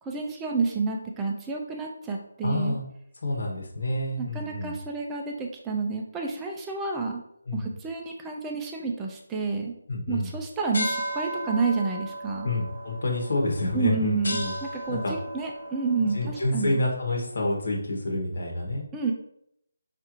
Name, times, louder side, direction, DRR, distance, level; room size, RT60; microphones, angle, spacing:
voice 1, 0.0-2.8 4.2-7.2 7.5-9.7 10.1-12.5 13.7-14.4 14.8-16.8 18.9-19.1, right 4 dB, 10° right, 0 dB, 0.3 m, -29 dB
voice 2, 2.4-2.8 3.2-4.7 7.5-7.7 9.9-10.3 12.4-14.5 14.9-15.1 16.1-18.8, left 1 dB, 55° left, -1 dB, 0.9 m, -28 dB
sound 1, 10.7-17.6, equal, 80° left, 0.8 m, -36 dB
5.3 x 2.4 x 2.9 m, 0.74 s
figure-of-eight pair, 175°, 0 cm